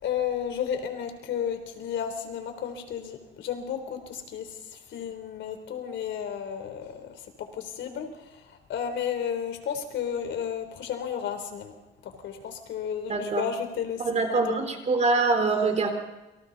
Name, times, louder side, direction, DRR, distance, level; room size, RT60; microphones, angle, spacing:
voice 1, 0.0-11.8 12.0-14.6, left 8 dB, 75° left, 7 dB, 3.7 m, -33 dB
voice 2, 13.1-13.4 14.0-15.9, right 3 dB, 35° right, 5 dB, 3.8 m, -24 dB
28.5 x 25.0 x 4.1 m, 1.0 s
cardioid pair, 125°, 20 cm